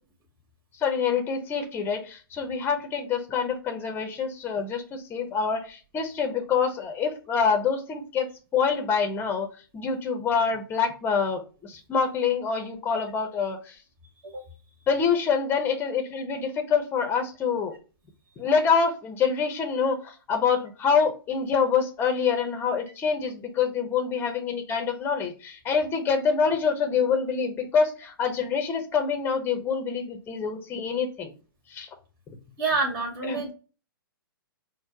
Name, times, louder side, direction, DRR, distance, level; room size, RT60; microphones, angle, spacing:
voice 1, 0.7-9.5 9.7-13.8 14.9-17.8 18.4-31.3 31.7-31.9 32.3-32.4 33.2-33.4, left 6 dB, 15° left, 5 dB, 0.8 m, -26 dB
voice 2, 32.6-33.5, right 3 dB, 45° right, 2 dB, 2.2 m, -27 dB
4.4 x 2.1 x 4.4 m, 0.35 s
figure-of-eight pair, 120°, 12 cm